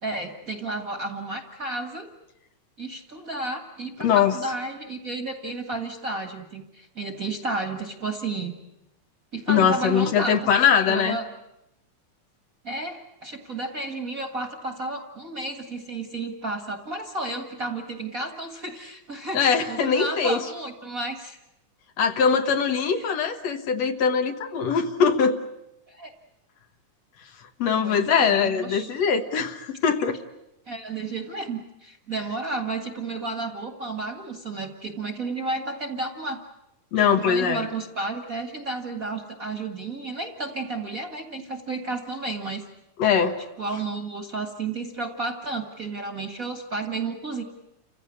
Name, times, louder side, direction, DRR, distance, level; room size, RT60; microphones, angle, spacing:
voice 1, 0.0-2.1 2.8-8.5 9.3-10.4 10.9-11.3 12.6-21.4 22.9-23.1 25.9-26.1 27.7-28.9 30.7-36.4 37.3-42.6 43.6-47.4, right 3 dB, 35° right, 5 dB, 1.6 m, -32 dB
voice 2, 4.0-4.4 9.5-11.2 19.3-20.4 22.0-25.4 27.6-30.2 36.9-37.7 43.0-43.4, left 7 dB, 65° left, 7 dB, 2.3 m, -22 dB
29.0 x 16.0 x 9.7 m, 0.85 s
omnidirectional pair, 3.4 m